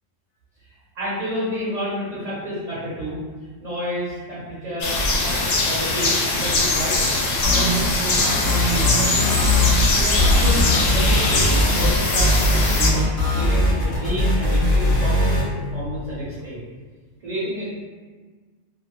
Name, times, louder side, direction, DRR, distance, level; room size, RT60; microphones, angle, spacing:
voice 1, 0.9-3.1 3.6-7.2 7.5-9.4 9.9-12.9 13.3-15.5 15.7-16.6 17.2-17.7, equal, 45° right, -8 dB, 0.6 m, -30 dB
sound 1, 4.8-12.9, left 2 dB, 75° left, 0.9 m, -21 dB
sound 2, 7.4-7.9 8.2-9.9 10.2-15.4, left 1 dB, 50° left, 0.8 m, -20 dB
2.5 x 2.2 x 2.9 m, 1.4 s
omnidirectional pair, 1.4 m